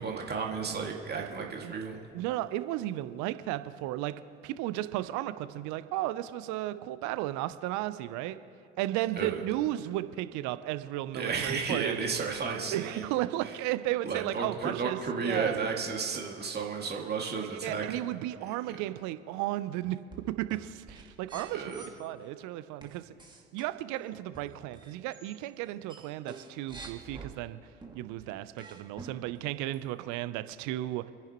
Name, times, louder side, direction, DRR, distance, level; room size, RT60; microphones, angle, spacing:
voice 1, 0.0-2.0 9.2-9.4 11.1-13.0 13.4-13.5 14.0-18.1 21.5-21.8, right 5 dB, 30° right, 0 dB, 2.4 m, -33 dB
voice 2, 2.1-4.2 4.4-8.4 8.8-12.0 12.7-15.6 17.4-20.0 20.3-21.7 22.0-23.1 23.5-27.6 27.9-31.1, right 15 dB, 60° right, 13 dB, 0.8 m, -34 dB
sound 1, 19.8-21.9 22.8-25.4 25.7-27.3 27.8-29.4 29.7-29.8, right 3 dB, 15° right, 2.4 m, -48 dB
29.0 x 10.5 x 3.1 m, 2.7 s
hypercardioid pair, 60°, 33 cm